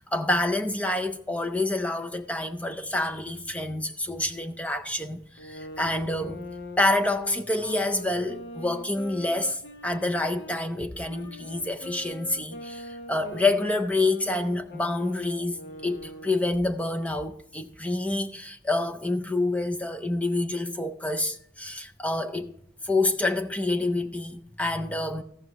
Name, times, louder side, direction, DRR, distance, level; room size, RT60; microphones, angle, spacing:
voice 1, 0.0-6.5 6.8-22.5 22.8-25.2, left 2 dB, 10° left, 0.4 m, -27 dB
sound 1, 5.4-10.6 11.1-16.7, equal, 65° left, 0.9 m, -42 dB
14.5 x 7.0 x 3.0 m
head